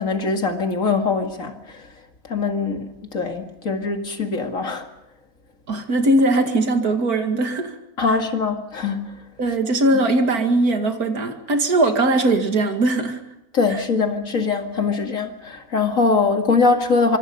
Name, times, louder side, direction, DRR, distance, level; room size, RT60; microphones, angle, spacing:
voice 1, 0.0-1.8 2.3-4.9 8.0-9.1 13.5-17.2, left 4 dB, 60° left, 2.5 m, -22 dB
voice 2, 5.7-7.8 9.4-13.2 13.7-13.8, right 2 dB, 90° right, 2.6 m, -20 dB
26.0 x 25.0 x 5.4 m
omnidirectional pair, 1.6 m